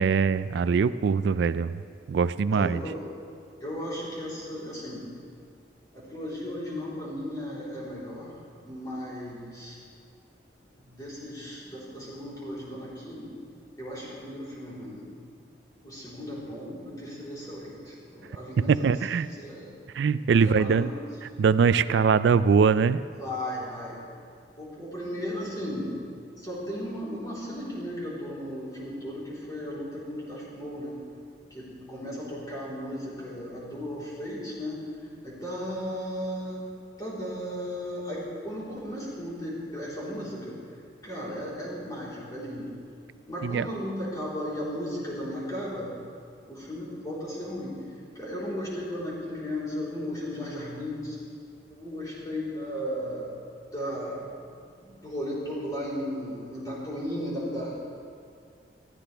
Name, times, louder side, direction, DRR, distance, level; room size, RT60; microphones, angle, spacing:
voice 1, 0.0-1.7 2.1-2.8 18.7-19.3 19.9-20.9 21.4-23.0 43.4-43.7, right 5 dB, 70° right, 14 dB, 0.3 m, -22 dB
voice 2, 2.5-3.0 3.6-5.1 5.9-8.4 8.7-9.8 10.9-13.3 13.8-15.1 15.8-18.9 19.3-19.7 20.4-21.0 23.2-24.0 24.6-25.9 26.4-31.0 31.5-34.9 35.2-36.6 37.0-40.6 41.0-42.7 43.3-45.9 46.5-47.7 48.1-51.2 51.7-53.3 53.7-54.5 54.8-57.8, equal, 20° left, -8 dB, 3.9 m, -35 dB
20.0 x 14.0 x 3.4 m, 2.2 s
head